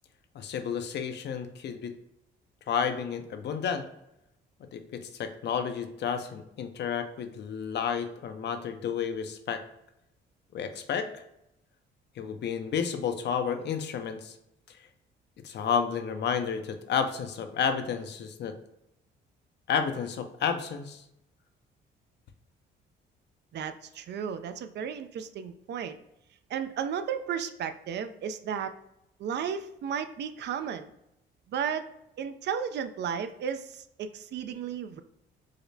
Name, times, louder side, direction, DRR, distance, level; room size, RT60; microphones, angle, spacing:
voice 1, 0.3-1.9 2.7-3.8 4.7-9.6 10.5-11.1 12.2-14.3 15.4-18.5 19.7-21.0, left 7 dB, 60° left, 7 dB, 0.5 m, -31 dB
voice 2, 23.5-26.0 26.5-28.7 29.2-30.9 31.5-31.9 32.2-35.0, right 7 dB, 60° right, 10 dB, 0.4 m, -34 dB
4.9 x 2.1 x 2.6 m, 0.82 s
cardioid pair, 90°, 20 cm